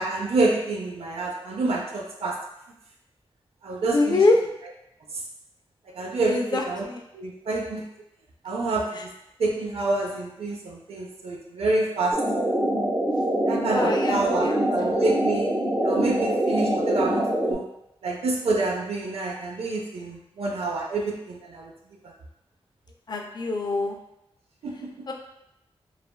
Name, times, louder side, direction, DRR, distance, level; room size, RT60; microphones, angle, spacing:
voice 1, 0.0-2.4 3.6-4.2 6.0-6.8 7.1-7.8 8.4-9.1 9.4-12.2 13.5-15.5 15.8-17.6 18.0-21.7 24.6-25.1, right 2 dB, 75° right, -1 dB, 0.5 m, -27 dB
voice 2, 3.9-4.4 6.3-7.0 13.7-14.6 23.1-24.0 25.1-25.2, left 2 dB, 45° left, 2 dB, 0.4 m, -24 dB
sound 1, 12.1-17.5, right 1 dB, 15° right, 0.5 m, -24 dB
3.2 x 2.2 x 2.2 m, 0.82 s
wide cardioid pair, 100°, 10 cm